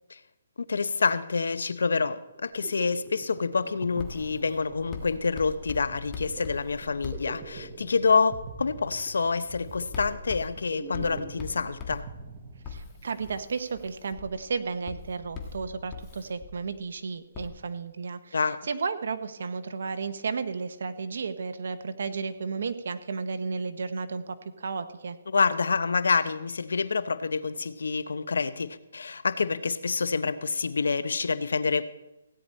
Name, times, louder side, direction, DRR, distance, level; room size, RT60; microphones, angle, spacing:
voice 1, 0.6-12.0 18.3-18.6 25.3-31.8, left 4 dB, 85° left, 14 dB, 0.8 m, -27 dB
sound 1, 2.3-13.1, right 4 dB, 20° right, 1.3 m, -44 dB
Writing, 4.0-7.9 8.5-8.8 9.5-16.9 17.3-17.5, left 5 dB, 15° left, 1.5 m, -42 dB
voice 2, 12.7-18.4 18.7-25.2, right 5 dB, 65° right, 10 dB, 1.1 m, -33 dB
16.5 x 9.8 x 4.3 m, 0.94 s
hypercardioid pair, 165°, 0 cm